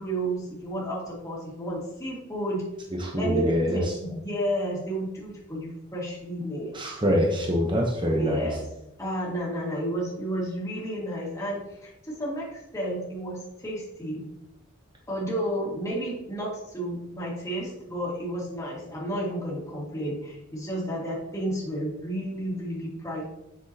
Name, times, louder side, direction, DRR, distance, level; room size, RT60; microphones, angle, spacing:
voice 1, 0.0-2.6 3.2-6.8 8.2-8.7 9.0-14.2 15.1-23.2, right 1 dB, 15° left, -6 dB, 2.0 m, -31 dB
voice 2, 3.0-3.9 6.7-8.5, equal, 25° right, -1 dB, 0.9 m, -25 dB
8.1 x 6.1 x 2.9 m, 0.87 s
head